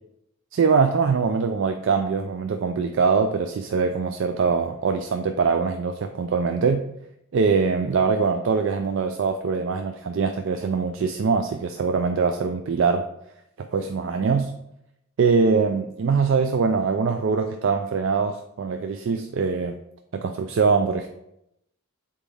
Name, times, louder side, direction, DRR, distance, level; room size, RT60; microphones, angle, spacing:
voice 1, 0.5-6.9 7.3-13.1 13.6-14.5 15.2-19.8 20.1-21.1, right 5 dB, 55° right, 6 dB, 0.3 m, -23 dB
7.1 x 4.3 x 3.4 m, 0.82 s
head